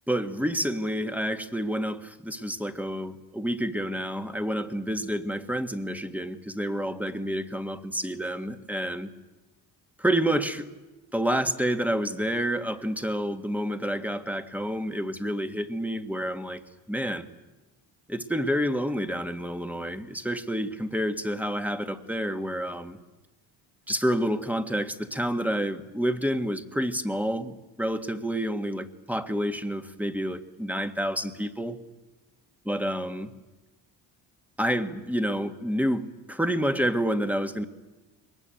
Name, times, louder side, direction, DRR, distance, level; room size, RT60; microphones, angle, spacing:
voice 1, 0.1-9.1 10.0-10.7 11.1-16.6 16.9-17.3 18.1-23.0 23.9-31.8 32.7-33.3 34.6-37.6, equal, 5° right, 7 dB, 1.7 m, -29 dB
22.5 x 20.0 x 9.2 m, 1.2 s
supercardioid pair, 65°, 48 cm